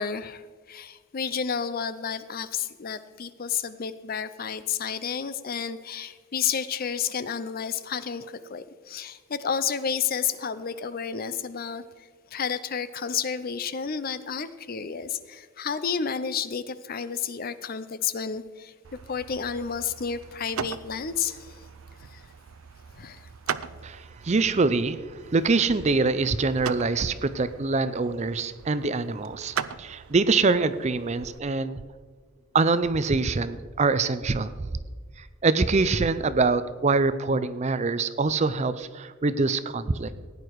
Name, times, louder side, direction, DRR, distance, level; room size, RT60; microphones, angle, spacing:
voice 1, 0.0-11.8 12.3-18.7 19.1-21.7 22.1-22.2 22.9-23.3, left 7 dB, 45° left, 14 dB, 0.5 m, -31 dB
sound 1, 18.8-31.4, right 7 dB, 85° right, 0.5 m, -40 dB
voice 2, 23.8-25.0 25.3-31.8 32.5-34.5 35.2-40.1, right 3 dB, 30° right, 13 dB, 0.5 m, -24 dB
16.0 x 9.7 x 4.7 m, 1.5 s
head